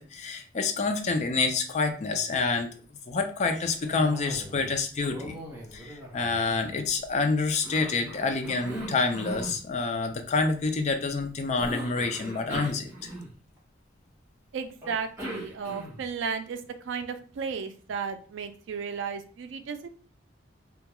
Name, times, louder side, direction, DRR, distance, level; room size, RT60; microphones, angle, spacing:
voice 1, 0.0-2.7 3.1-5.4 5.7-12.9, left 4 dB, 35° left, 5 dB, 0.3 m, -27 dB
Cough, 3.9-4.8 5.0-7.1 7.6-9.6 11.6-13.6 14.8-16.1, equal, 15° right, 0.7 m, -39 dB
voice 2, 14.5-16.6 16.8-19.9, right 6 dB, 70° right, 8 dB, 0.3 m, -34 dB
2.3 x 2.2 x 2.9 m, 0.40 s
head